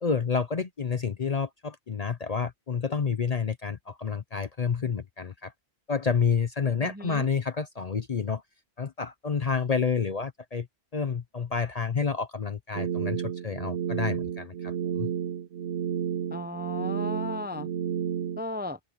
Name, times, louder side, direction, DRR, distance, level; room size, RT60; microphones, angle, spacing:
voice 1, 0.0-5.5 5.9-8.4 8.8-10.7 10.9-15.1, left 5 dB, 40° left, 0.7 m, -29 dB
voice 2, 6.8-7.3 16.3-17.7 18.4-18.8, left 2 dB, 10° right, 0.6 m, -35 dB
sound 1, 12.7-18.4, right 9 dB, 85° right, 1.0 m, -31 dB
open air
omnidirectional pair, 1.2 m